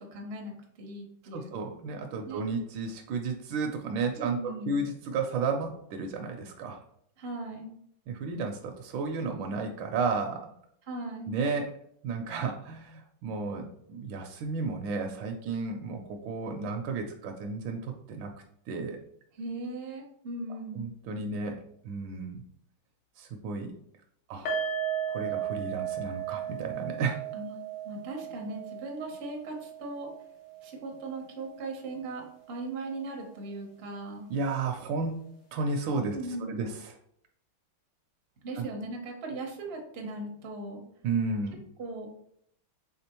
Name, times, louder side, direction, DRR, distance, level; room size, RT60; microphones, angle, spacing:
voice 1, 0.1-1.5 2.3-2.4 4.1-4.8 7.2-7.7 10.9-11.4 19.4-20.9 27.3-27.6 27.8-30.1 30.6-34.3 36.1-36.7 38.4-40.8 41.8-42.1, right 2 dB, 60° right, 1 dB, 0.6 m, -38 dB
voice 2, 1.3-6.8 8.1-10.5 11.3-11.7 12.0-18.3 18.7-19.0 20.7-22.4 23.2-23.7 24.3-24.5 25.1-27.2 34.3-35.2 35.5-36.2 36.5-36.9 38.6-38.7 41.0-41.6, right 4 dB, 75° right, 3 dB, 1.2 m, -33 dB
sound 1, 24.4-31.7 31.9-32.1 32.5-32.6, right 8 dB, 65° left, 1.5 m, -36 dB
4.3 x 3.5 x 2.9 m, 0.69 s
omnidirectional pair, 2.3 m